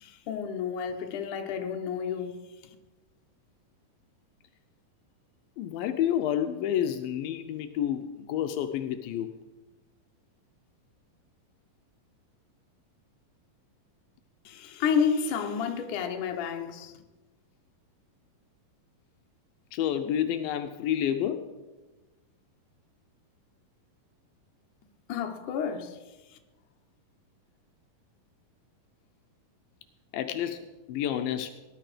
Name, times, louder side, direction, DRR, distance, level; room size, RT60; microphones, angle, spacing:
voice 1, 0.0-2.8 14.5-16.9 25.1-26.0 26.3-26.4, left 6 dB, 65° left, 2.5 m, -31 dB
voice 2, 5.6-9.3 19.7-21.4 30.1-31.6, left 10 dB, 85° left, 2.5 m, -29 dB
18.5 x 12.0 x 5.0 m
omnidirectional pair, 4.1 m